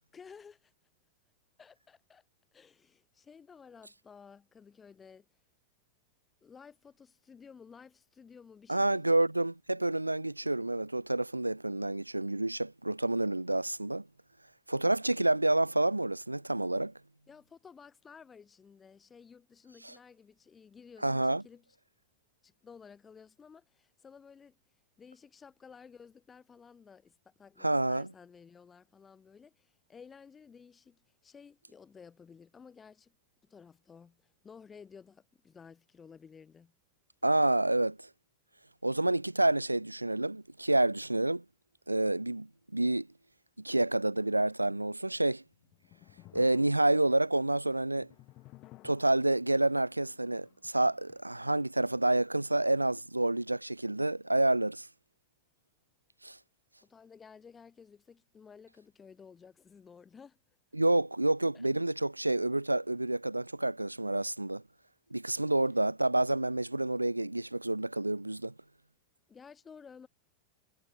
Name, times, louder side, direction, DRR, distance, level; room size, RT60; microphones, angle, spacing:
voice 1, 0.1-0.7 1.6-2.2 2.5-5.2 6.4-9.0 17.3-21.7 22.4-24.6 25.0-33.1 33.5-36.7 56.8-60.4 69.3-70.1, left 6 dB, 20° left, 3.2 m, -54 dB
voice 2, 8.7-14.0 14.7-16.9 19.8-19.9 21.0-21.4 27.6-28.1 37.2-38.1 38.8-41.4 41.9-43.1 43.6-45.4 46.3-48.1 48.8-54.9 56.2-56.4 60.7-64.6 65.1-68.5, right 2 dB, 85° right, 1.3 m, -28 dB
sound 1, 45.4-52.5, left 18 dB, 40° left, 3.9 m, -58 dB
figure-of-eight pair, 90°, 0 cm